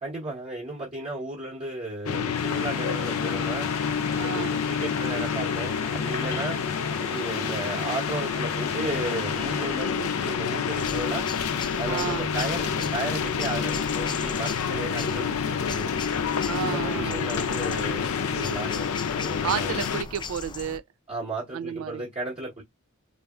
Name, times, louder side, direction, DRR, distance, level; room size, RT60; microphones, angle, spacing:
voice 1, 0.0-3.7 4.3-6.6 7.0-11.3 11.8-15.9 16.6-19.7 21.1-22.6, right 2 dB, 35° right, 1.1 m, -34 dB
sound 1, 2.1-20.0, left 6 dB, 85° left, 0.5 m, -28 dB
sound 2, 2.3-9.8, equal, 15° right, 0.9 m, -43 dB
voice 2, 4.2-4.6 6.3-6.7 7.3-7.9 9.9-10.1 11.8-12.4 16.4-17.3 19.4-20.8 21.5-22.0, right 7 dB, 80° right, 0.3 m, -32 dB
sound 3, 10.8-20.8, left 4 dB, 20° left, 0.3 m, -39 dB
3.3 x 2.4 x 2.3 m
head